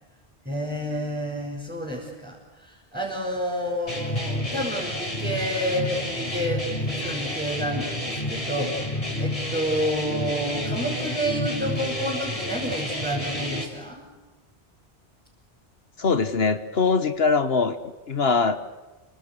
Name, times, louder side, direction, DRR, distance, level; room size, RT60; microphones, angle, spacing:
voice 1, 0.4-8.8 9.2-14.0, equal, 10° right, -4 dB, 6.7 m, -29 dB
sound 1, 3.9-13.6, left 1 dB, 35° left, 5.5 m, -30 dB
voice 2, 16.0-17.8 18.1-18.6, left 4 dB, 75° left, 10 dB, 1.5 m, -22 dB
29.5 x 26.5 x 6.8 m, 1.2 s
omnidirectional pair, 1.1 m